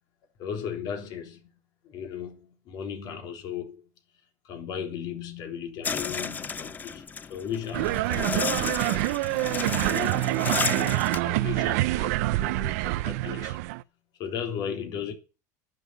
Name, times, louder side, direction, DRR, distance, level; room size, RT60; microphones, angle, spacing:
voice 1, 0.4-1.5 1.8-3.9 4.4-9.1 9.8-13.6 14.2-15.1, left 8 dB, 55° left, 3.5 m, -36 dB
sound 1, 5.8-11.2, left 5 dB, 20° left, 0.6 m, -32 dB
sound 2, 7.7-13.8, right 19 dB, 80° right, 0.6 m, -26 dB
11.0 x 7.0 x 9.7 m
supercardioid pair, 120°, 8 cm